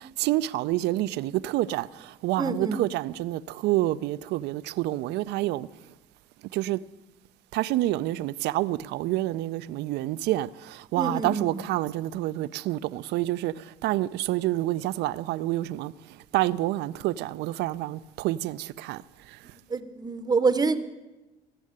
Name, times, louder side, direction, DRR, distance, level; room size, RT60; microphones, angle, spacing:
voice 1, 0.2-1.9 2.2-5.7 6.5-6.8 7.5-10.5 10.9-13.5 13.8-15.9 16.3-19.0, right 16 dB, 85° right, 0.4 m, -28 dB
voice 2, 2.4-2.8 10.9-11.7 19.7-20.8, right 4 dB, 25° right, 0.7 m, -26 dB
16.5 x 6.5 x 8.6 m
cardioid pair, 110°, 17 cm